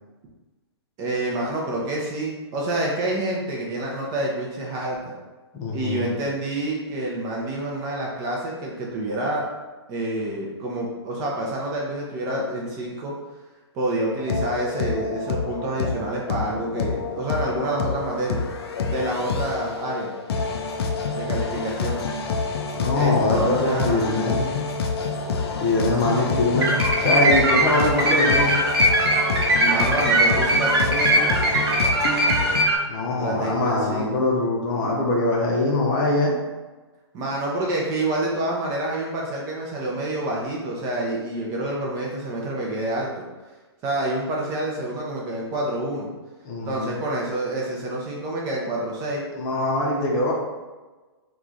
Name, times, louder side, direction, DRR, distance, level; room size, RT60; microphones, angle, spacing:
voice 1, 1.0-5.1 5.7-9.5 9.9-13.1 13.7-18.4 18.9-20.1 21.1-22.0 22.9-24.1 26.1-26.2 29.6-31.5 33.1-34.1 37.1-43.3 43.8-46.1 46.7-49.2, right 1 dB, 25° right, -3 dB, 0.5 m, -28 dB
voice 2, 5.5-6.1 19.2-19.3 22.7-24.5 25.6-26.7 27.0-28.5 32.9-36.4 46.4-47.0 49.3-50.3, left 2 dB, 25° left, -2 dB, 0.7 m, -23 dB
Chorus music - Techno loop, 14.2-32.7, left 4 dB, 65° left, 0.5 m, -27 dB
sound 1, 26.6-32.8, right 1 dB, 60° right, 1.1 m, -20 dB
3.0 x 2.4 x 3.8 m, 1.2 s
hypercardioid pair, 150°, 14 cm